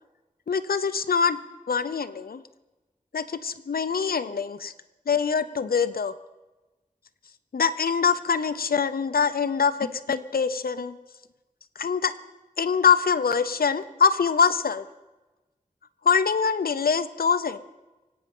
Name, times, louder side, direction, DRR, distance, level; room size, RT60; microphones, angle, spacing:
voice 1, 0.5-1.4 1.7-2.4 3.1-4.7 5.1-6.1 7.5-11.0 11.8-12.1 12.6-14.8 16.0-17.6, left 6 dB, 90° left, 11 dB, 0.6 m, -24 dB
24.5 x 8.7 x 5.4 m, 1.1 s
cardioid pair, 40°, 15 cm